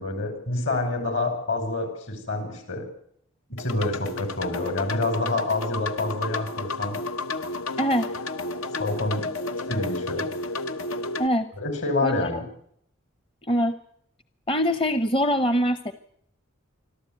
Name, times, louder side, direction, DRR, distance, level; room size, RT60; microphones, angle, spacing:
voice 1, 0.0-2.9 3.5-7.0 8.8-9.3 9.7-10.3 11.6-12.5, left 2 dB, 65° left, 7 dB, 5.9 m, -27 dB
sound 1, 3.6-11.3, left 3 dB, 85° left, 1.0 m, -32 dB
voice 2, 14.5-15.9, equal, 25° left, 11 dB, 0.8 m, -23 dB
25.5 x 13.5 x 9.2 m, 0.70 s
head